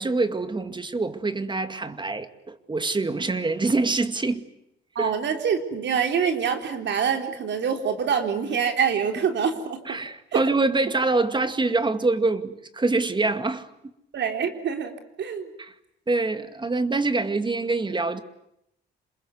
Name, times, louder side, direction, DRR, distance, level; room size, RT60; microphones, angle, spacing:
voice 1, 0.0-4.5 5.0-5.1 9.9-13.7 15.6-15.7 16.1-18.2, right 3 dB, 25° right, 2.2 m, -25 dB
voice 2, 5.0-10.0 10.3-10.4 14.1-14.9 15.2-15.5, right 7 dB, 65° right, 3.9 m, -25 dB
27.5 x 21.5 x 9.5 m
cardioid pair, 90°, 20 cm